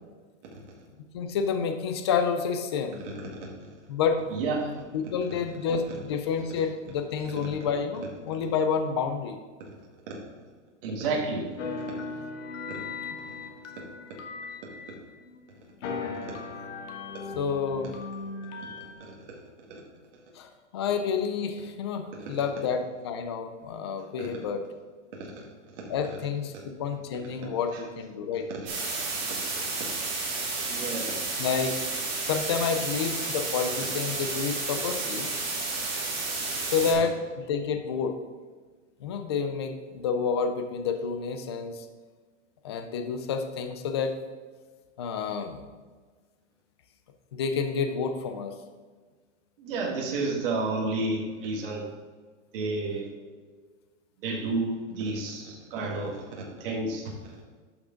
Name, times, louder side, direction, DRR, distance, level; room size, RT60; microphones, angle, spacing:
voice 1, 1.1-3.0 3.9-4.2 4.9-9.4 17.4-17.9 20.3-24.6 25.9-28.5 31.4-31.8 32.3-35.3 36.6-38.1 39.0-41.9 42.6-44.2 45.0-45.6 47.3-48.5, left 6 dB, 25° left, 7 dB, 0.4 m, -29 dB
voice 2, 4.3-4.7 10.8-11.5 19.2-19.4 19.7-19.8 22.3-22.4 24.2-24.3 25.4-25.5 28.6-28.7 29.5-29.6 30.7-31.2 49.6-51.8 52.5-53.1 54.2-56.2 56.6-57.0, right 3 dB, 45° right, -2 dB, 2.0 m, -30 dB
sound 1, 11.6-15.4 15.8-18.9, left 4 dB, 70° left, 1.5 m, -38 dB
sound 2, 28.7-36.9, right 3 dB, 25° right, 2.2 m, -31 dB
11.0 x 6.0 x 3.8 m, 1.5 s
supercardioid pair, 165°, 38 cm